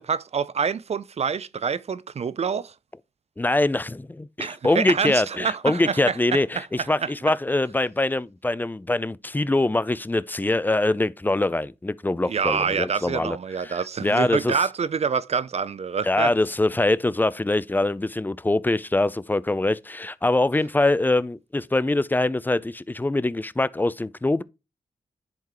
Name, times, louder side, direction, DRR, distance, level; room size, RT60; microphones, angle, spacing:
voice 1, 0.0-2.7 4.4-7.1 12.3-16.3, right 6 dB, 45° right, 0.4 m, -27 dB
voice 2, 3.4-13.4 13.6-14.5 16.0-24.4, left 2 dB, 10° left, 0.4 m, -23 dB
10.5 x 3.7 x 3.0 m
supercardioid pair, 40°, 15 cm